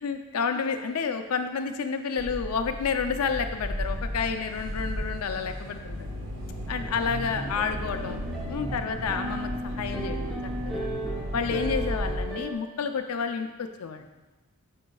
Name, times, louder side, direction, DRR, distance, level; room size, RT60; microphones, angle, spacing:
voice 1, 0.0-6.1 6.7-8.2 8.5-10.9 11.3-14.1, left 5 dB, 90° left, 6 dB, 0.5 m, -30 dB
sound 1, 2.2-12.2, equal, 65° right, 1.6 m, -34 dB
sound 2, 7.0-12.5, right 1 dB, ahead, 0.9 m, -36 dB
13.0 x 5.2 x 2.3 m, 1.1 s
head